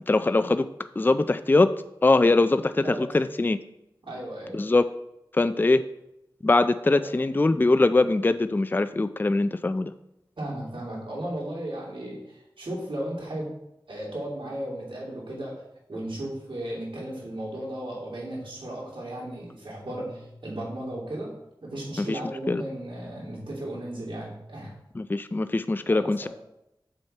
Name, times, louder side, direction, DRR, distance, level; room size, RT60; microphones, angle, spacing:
voice 1, 0.1-0.7 1.0-1.7 2.0-3.6 4.5-4.8 5.3-5.8 6.4-9.9 22.0-22.2 22.5-22.6 25.0-26.3, left 2 dB, 25° left, 11 dB, 0.3 m, -22 dB
voice 2, 4.0-4.6 6.9-7.1 10.4-13.5 13.9-24.8 25.9-26.3, right 1 dB, 80° right, -5 dB, 3.0 m, -35 dB
7.3 x 6.2 x 4.4 m, 0.86 s
wide cardioid pair, 70°, 9 cm